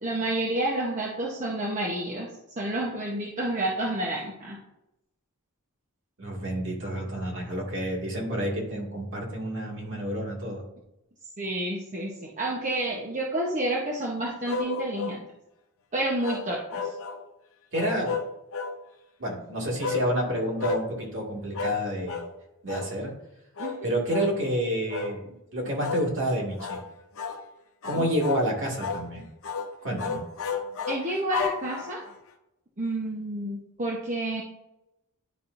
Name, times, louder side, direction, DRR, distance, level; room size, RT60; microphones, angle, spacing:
voice 1, 0.0-4.6 11.4-15.3 15.9-17.0 23.6-23.8 28.0-28.1 30.9-32.0 32.8-34.4, right 1 dB, 35° right, -3 dB, 0.9 m, -30 dB
voice 2, 6.2-10.6 17.7-18.2 19.2-22.2 22.6-23.1 23.8-26.8 27.8-29.2 29.8-30.2, equal, 55° right, -2 dB, 2.0 m, -29 dB
sound 1, 14.5-15.2 16.2-17.2 17.7-18.8 19.8-20.1 20.6-20.9 21.5-21.8 22.1-22.3 22.7-22.9 23.6-23.8 24.1-24.3 24.9-25.2 25.8-26.1 26.6-26.8 27.2-27.4 27.8-28.5 28.8-29.1 29.4-29.7 30.0-32.1, left 4 dB, 65° left, 0.7 m, -32 dB
10.0 x 4.3 x 2.6 m, 0.90 s
head